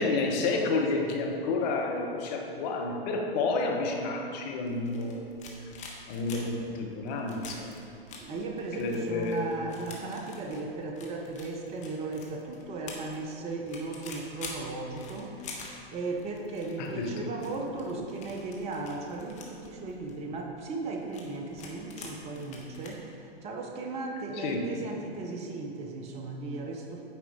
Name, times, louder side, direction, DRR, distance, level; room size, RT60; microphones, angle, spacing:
voice 1, 0.0-5.3 6.1-7.9 8.8-9.5 16.8-17.4 17.9-18.0 24.4-24.8, left 3 dB, 45° left, 2 dB, 1.0 m, -30 dB
sound 1, 4.6-22.9, left 4 dB, 25° left, 1.0 m, -47 dB
voice 2, 8.2-15.4 15.9-27.0, right 3 dB, 20° right, 2 dB, 0.7 m, -36 dB
8.8 x 4.8 x 3.4 m, 2.5 s
figure-of-eight pair, 110°, 31 cm